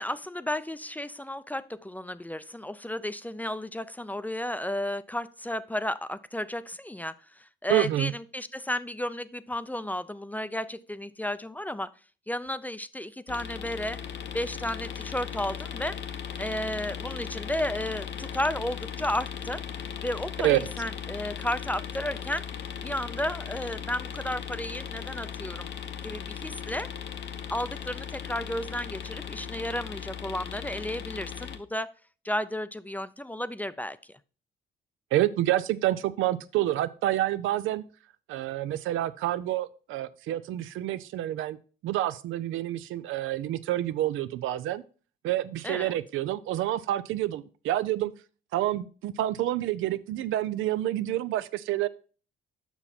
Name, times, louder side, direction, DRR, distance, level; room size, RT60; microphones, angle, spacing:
voice 1, 0.0-11.9 12.3-14.0 14.3-16.0 16.4-19.6 20.0-22.4 22.8-25.7 26.0-26.9 27.5-31.9 32.2-34.2 45.6-46.0, left 1 dB, 10° left, 14 dB, 0.4 m, -33 dB
voice 2, 7.7-8.1 20.4-20.6 35.1-37.8 38.3-41.6 41.8-44.8 45.2-48.1 48.5-51.9, right 14 dB, 85° right, 14 dB, 0.5 m, -28 dB
sound 1, 13.3-31.6, left 8 dB, 65° left, 0.9 m, -38 dB
7.0 x 5.8 x 4.2 m, 0.38 s
cardioid pair, 90°, 20 cm